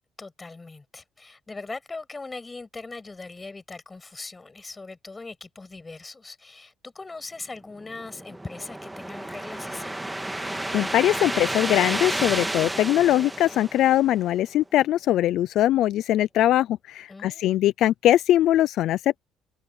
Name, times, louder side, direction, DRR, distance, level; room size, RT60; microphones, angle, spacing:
voice 1, 0.2-10.0 17.1-17.7, left 3 dB, 25° left, 7.0 m, -40 dB
sound 1, 7.8-14.3, right 1 dB, 10° right, 2.0 m, -31 dB
voice 2, 10.3-19.2, left 13 dB, 70° left, 0.5 m, -21 dB
supercardioid pair, 75°, 0 cm